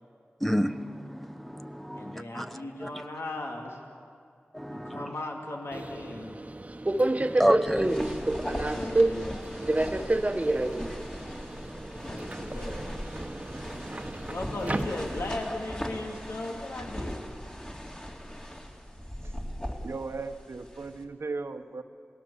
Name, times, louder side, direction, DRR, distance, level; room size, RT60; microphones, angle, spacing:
voice 1, 0.4-2.5 2.8-2.9 4.5-5.1 7.2-8.2, equal, 5° left, 0.7 m, -29 dB
voice 2, 1.9-3.8 4.7-6.3 8.3-9.4 11.9-12.8 14.3-17.3, left 2 dB, 80° left, 2.6 m, -37 dB
Subway metro underground, 5.7-15.5, right 2 dB, 30° right, 1.1 m, -30 dB
sound 1, 7.7-21.0, equal, 20° left, 2.9 m, -39 dB
voice 3, 19.8-21.8, right 3 dB, 75° right, 1.1 m, -37 dB
28.0 x 18.5 x 7.2 m
wide cardioid pair, 50°, 4 cm